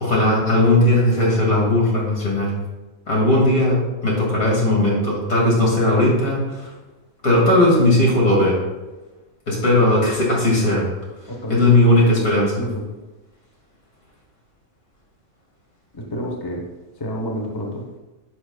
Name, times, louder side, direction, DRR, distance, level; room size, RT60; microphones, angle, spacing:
voice 1, 0.0-2.5 3.1-6.7 7.2-8.6 9.5-10.8 11.5-12.7, left 1 dB, 70° left, -4 dB, 2.7 m, -17 dB
voice 2, 11.3-11.7 12.6-12.8 15.9-16.6 17.0-17.8, equal, 20° left, 0 dB, 0.7 m, -29 dB
9.7 x 6.0 x 2.3 m, 1.1 s
omnidirectional pair, 1.5 m